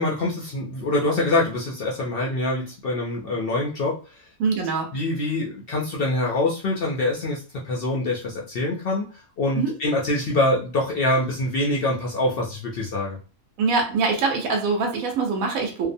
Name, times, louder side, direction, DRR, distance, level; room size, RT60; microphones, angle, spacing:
voice 1, 0.0-4.0 4.9-7.4 7.6-13.2, left 2 dB, 70° left, -2 dB, 0.5 m, -25 dB
voice 2, 4.4-4.9 9.5-9.7 13.6-15.9, right 4 dB, 70° right, 1 dB, 1.1 m, -23 dB
2.7 x 2.0 x 2.5 m, 0.36 s
omnidirectional pair, 1.5 m